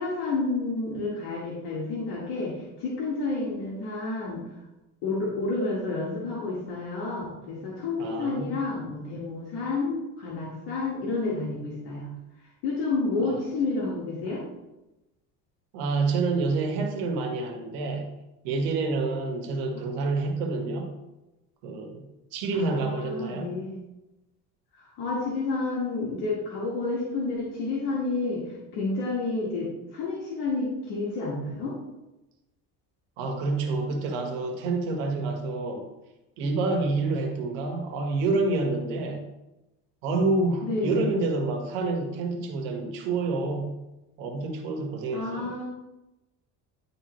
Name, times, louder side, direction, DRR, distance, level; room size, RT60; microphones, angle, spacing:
voice 1, 0.0-4.4 5.0-12.1 12.6-14.4 22.5-23.8 24.8-31.8 40.6-41.2 45.1-45.7, left 3 dB, 75° left, -5 dB, 1.8 m, -30 dB
voice 2, 8.0-8.5 13.2-13.4 14.3-14.4 15.7-18.1 18.4-20.9 21.6-22.0 22.3-23.5 33.2-35.9 36.4-39.2 40.0-43.8 44.2-45.5, right 3 dB, 85° right, 2 dB, 1.5 m, -28 dB
10.5 x 3.7 x 3.1 m, 0.98 s
supercardioid pair, 90°, 36 cm